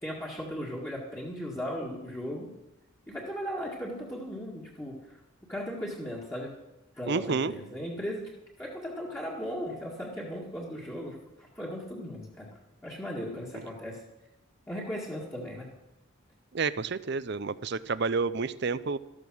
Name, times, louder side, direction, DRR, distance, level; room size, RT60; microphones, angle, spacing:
voice 1, 0.0-2.5 3.1-5.2 5.5-6.5 7.0-8.3 8.6-12.5 12.8-14.0 14.7-15.7, equal, 10° left, -5 dB, 1.9 m, -37 dB
voice 2, 7.1-7.5 16.5-19.0, right 4 dB, 50° right, 16 dB, 0.5 m, -29 dB
14.0 x 12.5 x 6.2 m, 0.94 s
head